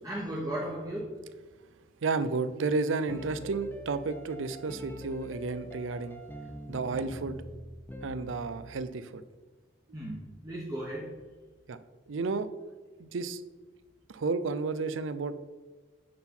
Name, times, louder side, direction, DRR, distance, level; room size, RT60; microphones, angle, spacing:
voice 1, 0.0-1.2 9.9-11.1, right 1 dB, 20° right, -5 dB, 1.0 m, -35 dB
voice 2, 2.0-6.2 6.7-7.4 8.0-9.2 9.9-10.0 11.7-11.8 12.1-12.5 13.0-13.4 14.1-15.4, right 4 dB, 90° right, 13 dB, 0.5 m, -32 dB
sound 1, 2.8-8.8, equal, 10° left, 0.6 m, -44 dB
9.6 x 3.8 x 4.5 m, 1.4 s
head